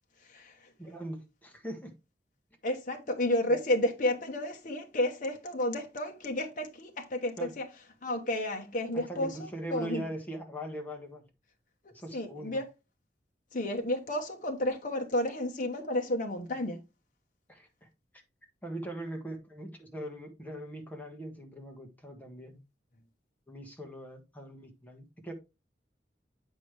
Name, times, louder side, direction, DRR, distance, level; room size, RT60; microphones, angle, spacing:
voice 1, 0.2-0.7 2.6-7.7 8.0-10.1 11.8-12.6 13.5-16.8, left 1 dB, 45° left, 1.1 m, -31 dB
voice 2, 0.8-1.9 7.4-7.5 8.9-11.2 11.9-12.6 17.5-17.9 18.6-22.5 23.5-25.3, right 1 dB, 10° left, 1.5 m, -41 dB
8.5 x 5.4 x 3.3 m
head